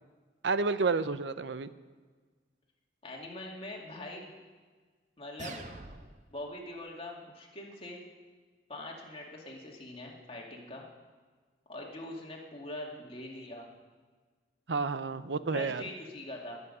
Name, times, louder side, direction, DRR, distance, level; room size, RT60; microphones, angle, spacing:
voice 1, 0.4-1.7 14.7-15.8, right 4 dB, 75° right, 13 dB, 0.6 m, -30 dB
voice 2, 3.0-4.3 5.2-5.6 6.3-8.0 8.7-10.9 11.7-13.7 15.4-16.6, left 1 dB, 35° left, -1 dB, 2.3 m, -43 dB
sound 1, 5.4-6.4, right 2 dB, 45° right, 1.0 m, -45 dB
20.5 x 8.3 x 5.5 m, 1.4 s
head